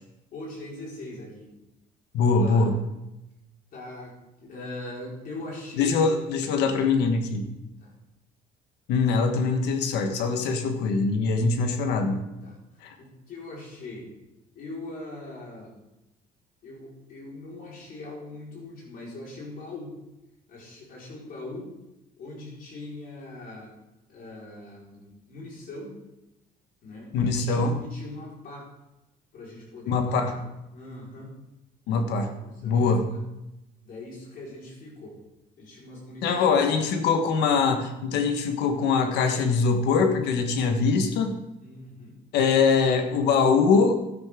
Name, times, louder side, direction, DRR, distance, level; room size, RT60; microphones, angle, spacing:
voice 1, 0.3-1.5 2.1-2.7 3.7-6.0 7.8-7.9 11.4-11.7 12.4-12.6 13.0-14.1 14.5-15.7 16.6-20.0 20.5-21.7 22.2-23.7 24.1-26.0 26.8-28.7 29.3-30.4 30.7-31.4 32.4-33.2 33.8-35.2 35.6-36.9 41.6-42.2, left 2 dB, 60° left, -4 dB, 4.7 m, -41 dB
voice 2, 2.1-2.7 5.8-7.4 8.9-12.2 12.8-12.9 27.1-27.8 29.9-30.4 31.9-32.3 32.6-33.1 36.2-41.3 42.3-44.0, left 4 dB, 85° left, 6 dB, 1.4 m, -23 dB
12.0 x 10.5 x 3.7 m, 0.94 s
cardioid pair, 110°, 17 cm